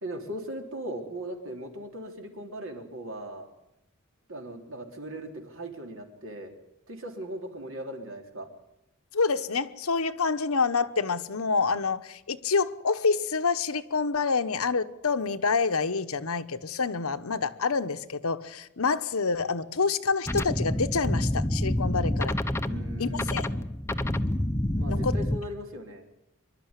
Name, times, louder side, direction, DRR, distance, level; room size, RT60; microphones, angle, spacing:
voice 1, 0.0-3.5 4.3-6.5 6.9-8.5 22.7-23.7 24.7-26.1, right 1 dB, 65° right, 3.6 m, -38 dB
voice 2, 9.1-22.4 23.0-23.5 24.9-25.1, left 4 dB, 75° left, 1.1 m, -27 dB
sound 1, 20.3-25.4, left 1 dB, 10° left, 0.8 m, -28 dB
25.5 x 12.0 x 9.9 m
head